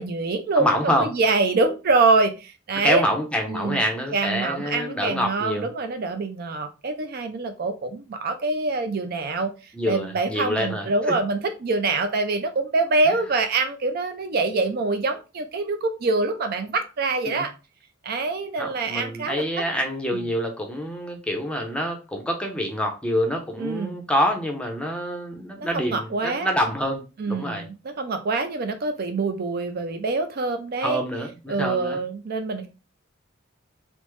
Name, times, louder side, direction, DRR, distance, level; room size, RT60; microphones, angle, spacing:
voice 1, 0.0-3.1 3.5-3.8 4.1-9.5 9.9-17.5 18.0-19.6 20.1-20.2 23.6-24.0 25.6-26.5 27.2-31.0 31.5-32.7, right 3 dB, 50° right, 7 dB, 0.4 m, -25 dB
voice 2, 0.6-1.1 2.8-5.7 9.7-10.9 17.3-17.4 18.6-27.6 30.8-32.0, equal, 5° left, 2 dB, 0.5 m, -26 dB
3.3 x 2.0 x 3.0 m, 0.29 s
head